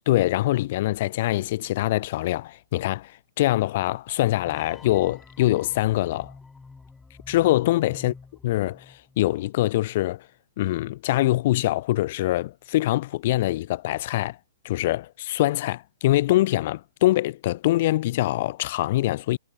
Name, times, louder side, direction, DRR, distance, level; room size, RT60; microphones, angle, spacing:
voice 1, 0.1-6.3 7.3-8.1 8.4-10.3 10.6-14.4 14.6-19.4, left 16 dB, 45° left, 0.5 m, -24 dB
sound 1, 4.4-9.5, left 4 dB, 5° left, 4.2 m, -48 dB
hypercardioid pair, 160°, 0 cm